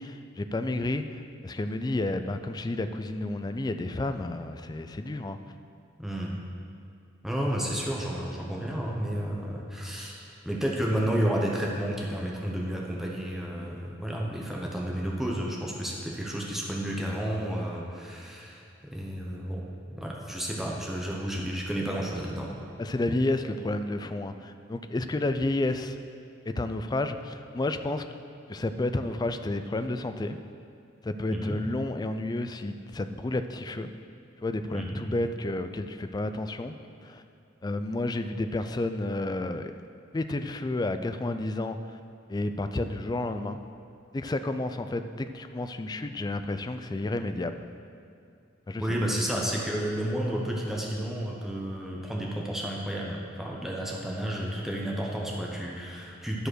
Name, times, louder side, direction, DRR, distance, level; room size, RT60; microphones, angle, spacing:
voice 1, 0.0-5.4 22.8-26.0 26.5-28.0 28.5-30.4 31.0-33.9 34.4-36.7 37.0-37.2 37.6-39.7 40.1-42.0 42.3-43.6 44.1-47.6 48.7-48.8, left 2 dB, 20° left, 9 dB, 0.3 m, -31 dB
voice 2, 6.0-6.4 7.2-19.6 19.9-22.6 31.3-31.6 34.7-35.0 48.8-56.5, right 1 dB, ahead, -3 dB, 0.9 m, -31 dB
11.5 x 5.0 x 6.3 m, 2.5 s
head